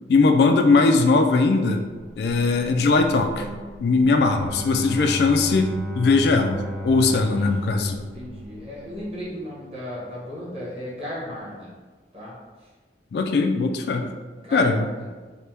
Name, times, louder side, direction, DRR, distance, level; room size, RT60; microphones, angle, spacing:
voice 1, 0.1-1.8 2.2-3.5 3.8-8.0 13.1-14.1 14.5-14.9, left 3 dB, 65° left, 5 dB, 0.3 m, -20 dB
sound 1, 1.7-9.5, right 1 dB, 90° right, 1.1 m, -42 dB
Bowed string instrument, 4.0-9.0, equal, 5° right, 0.5 m, -34 dB
voice 2, 7.3-7.8 8.1-11.7 12.1-12.7 14.1-15.1, equal, 35° right, -7 dB, 1.2 m, -36 dB
3.4 x 2.1 x 4.2 m, 1.4 s
head